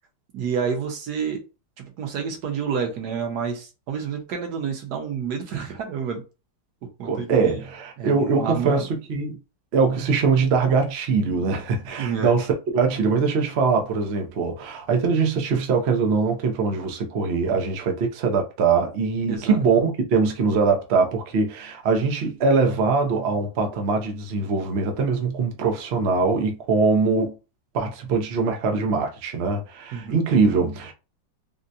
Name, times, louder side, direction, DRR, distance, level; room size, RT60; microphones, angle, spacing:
voice 1, 0.3-1.4 1.8-6.2 7.0-7.6 8.0-8.9 12.0-12.3 19.3-19.6 29.9-30.2, right 6 dB, 65° right, 1.3 m, -29 dB
voice 2, 7.0-9.4 9.7-27.3 27.7-30.9, right 4 dB, 85° right, 0.5 m, -22 dB
3.7 x 2.1 x 2.6 m
omnidirectional pair, 2.0 m